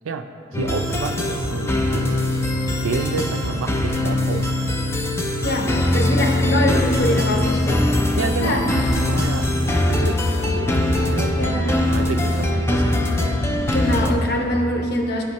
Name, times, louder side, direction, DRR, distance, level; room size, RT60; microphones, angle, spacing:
voice 1, 0.0-2.2 2.7-4.5 8.2-9.5 9.9-13.4, right 4 dB, 90° right, 7 dB, 0.4 m, -30 dB
sound 1, 0.5-14.1, left 1 dB, 15° left, 0.3 m, -21 dB
voice 2, 5.4-7.9 8.4-8.8 11.4-11.7 13.7-15.2, left 1 dB, 55° left, 2 dB, 0.7 m, -23 dB
10.0 x 5.1 x 2.9 m, 2.4 s
head